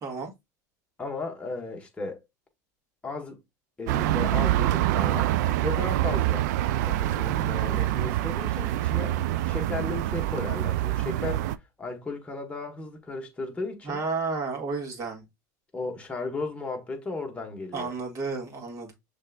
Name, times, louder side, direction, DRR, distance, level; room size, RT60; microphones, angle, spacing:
voice 1, 0.0-0.3 13.8-15.2 17.7-18.9, right 4 dB, 35° right, 2.1 m, -32 dB
voice 2, 1.0-2.2 3.0-3.4 3.8-5.3 5.6-6.5 6.8-9.2 9.4-11.4 11.8-14.0 15.7-17.9, left 3 dB, 15° left, 1.4 m, -35 dB
sound 1, 3.9-11.6, right 14 dB, 75° right, 0.4 m, -26 dB
6.4 x 3.4 x 2.4 m
supercardioid pair, 115°, 9 cm